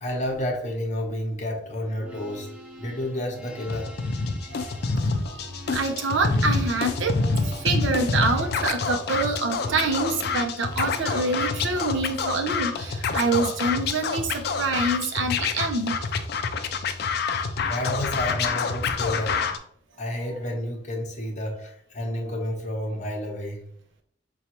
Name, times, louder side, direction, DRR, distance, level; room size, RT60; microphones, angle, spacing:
voice 1, 0.0-2.5 2.8-3.9 17.7-19.4 20.0-23.6, left 1 dB, 40° left, 1 dB, 0.8 m, -30 dB
sound 1, 1.9-12.1, equal, 5° right, 0.4 m, -45 dB
Scratching (performance technique), 3.7-19.6, left 4 dB, 60° left, 0.4 m, -27 dB
voice 2, 5.7-16.0, right 3 dB, 85° right, 5 dB, 0.6 m, -26 dB
5.2 x 2.3 x 2.9 m, 0.68 s
head